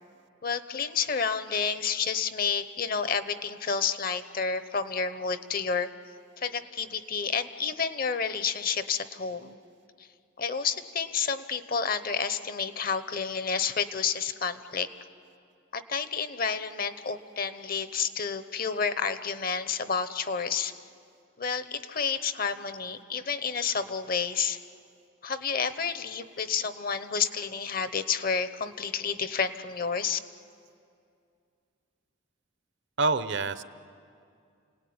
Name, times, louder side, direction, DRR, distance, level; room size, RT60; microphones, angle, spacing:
voice 1, 0.4-5.9 6.4-9.6 10.0-10.1 10.4-14.9 15.7-20.7 21.4-24.6 25.2-30.2, left 6 dB, 45° left, 12 dB, 1.0 m, -30 dB
voice 2, 33.0-33.6, right 3 dB, 60° right, 13 dB, 0.8 m, -26 dB
29.5 x 18.5 x 9.6 m, 2.4 s
head